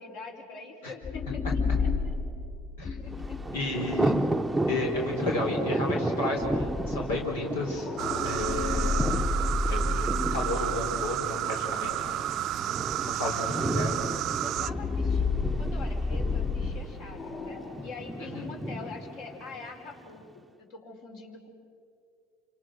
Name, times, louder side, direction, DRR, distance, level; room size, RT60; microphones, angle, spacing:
voice 1, 0.0-1.5 1.8-2.1 3.0-3.7 13.2-13.4 14.4-15.2 15.6-21.5, left 4 dB, 65° left, 1 dB, 5.5 m, -44 dB
sound 1, 1.0-5.3 6.4-12.4 12.9-13.0 14.6-18.0, left 3 dB, 30° left, 5.4 m, -31 dB
Thunder, 3.1-20.1, right 1 dB, 5° right, 0.7 m, -33 dB
voice 2, 3.5-4.1 4.7-7.9 8.2-9.2 9.7-12.2 13.0-14.1, left 2 dB, 90° left, 0 dB, 4.3 m, -32 dB
sound 2, 8.0-14.7, right 13 dB, 50° right, 0.5 m, -31 dB
29.0 x 27.0 x 6.4 m, 2.5 s
supercardioid pair, 110°, 0 cm